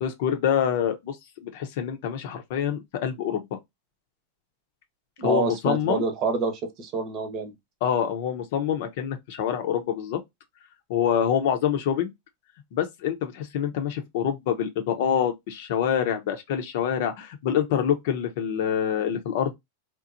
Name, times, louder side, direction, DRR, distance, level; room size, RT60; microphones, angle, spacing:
voice 1, 0.0-3.4 5.2-6.0 7.8-10.2 10.9-12.1 12.7-19.5, left 9 dB, 60° left, 0.7 m, -26 dB
voice 2, 5.2-7.5, right 4 dB, 45° right, 0.9 m, -27 dB
2.9 x 2.0 x 2.5 m
hypercardioid pair, 105°, 0 cm